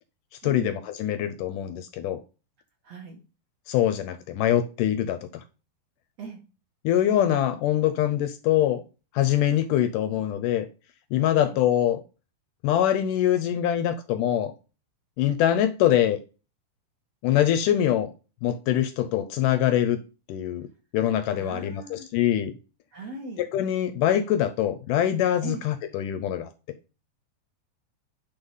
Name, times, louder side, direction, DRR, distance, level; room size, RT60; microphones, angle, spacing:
voice 1, 0.4-2.2 3.7-5.4 6.8-8.8 9.1-10.7 11.1-12.0 12.6-14.5 15.2-16.2 17.2-18.1 18.4-20.0 20.3-20.7 20.9-22.5 23.4-26.5, left 11 dB, 80° left, 1.9 m, -24 dB
voice 2, 2.8-3.2 6.2-6.4 11.3-11.6 21.4-22.1 22.9-23.4 25.4-25.6, right 4 dB, 55° right, 2.0 m, -39 dB
9.8 x 3.6 x 5.5 m
omnidirectional pair, 4.4 m